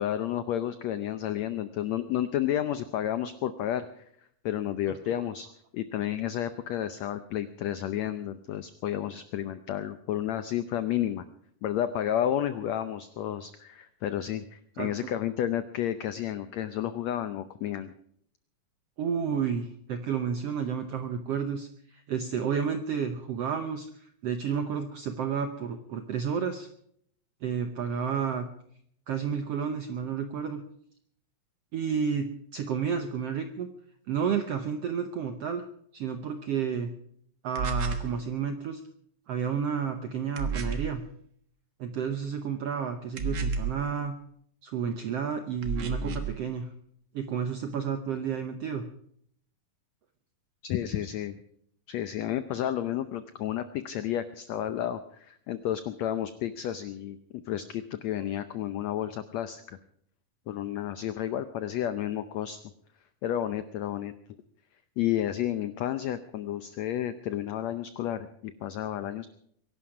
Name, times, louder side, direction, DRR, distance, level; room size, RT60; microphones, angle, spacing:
voice 1, 0.0-4.0 4.4-5.5 5.7-11.3 11.6-17.9 50.6-51.4 51.9-59.8 60.5-62.6 63.2-64.1 65.0-69.3, left 11 dB, 85° left, 11 dB, 1.5 m, -31 dB
voice 2, 19.0-26.7 27.4-28.5 29.1-30.6 31.7-33.7 34.1-35.6 35.9-36.9 37.4-38.8 39.3-41.0 41.8-44.2 44.6-46.7 47.1-48.9, right 7 dB, 80° right, 8 dB, 1.4 m, -31 dB
sound 1, 37.6-38.1 40.4-41.0 43.2-43.8 45.6-46.4, right 4 dB, 60° right, 1.1 m, -31 dB
23.0 x 11.5 x 4.9 m, 0.67 s
omnidirectional pair, 4.1 m